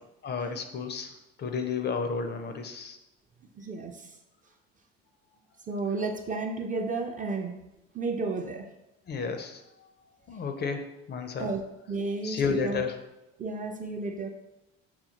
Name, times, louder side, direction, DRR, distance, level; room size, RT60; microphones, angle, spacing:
voice 1, 0.2-1.1 1.4-3.0 9.1-9.6 10.3-11.5 12.2-13.0, left 5 dB, 35° left, 7 dB, 0.4 m, -31 dB
voice 2, 3.6-3.9 5.7-7.5 7.9-8.7 11.4-11.6 11.9-12.8 13.4-14.3, right 3 dB, 25° right, 4 dB, 0.4 m, -32 dB
5.7 x 2.2 x 2.8 m, 0.92 s
supercardioid pair, 80°, 30 cm